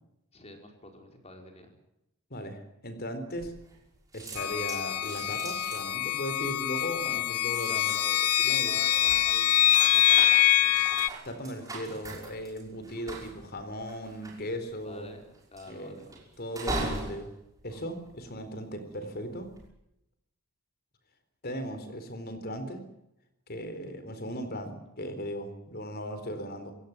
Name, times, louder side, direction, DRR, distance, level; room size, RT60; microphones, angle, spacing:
voice 1, 0.3-1.7 7.0-7.3 7.7-11.1 14.8-15.2 15.5-16.1, left 2 dB, 30° left, 4 dB, 5.0 m, -48 dB
voice 2, 2.3-3.5 4.1-7.9 8.4-8.7 11.2-15.1 15.7-16.0 16.4-17.3 17.6-19.5 21.4-22.8 23.5-26.7, equal, 45° left, 10 dB, 4.2 m, -37 dB
sound 1, 3.4-3.9 4.1-18.7 19.3-19.7, right 2 dB, 15° right, 5.9 m, -41 dB
sound 2, 4.4-11.1, left 12 dB, 75° left, 0.9 m, -25 dB
27.0 x 17.0 x 7.5 m, 0.83 s
head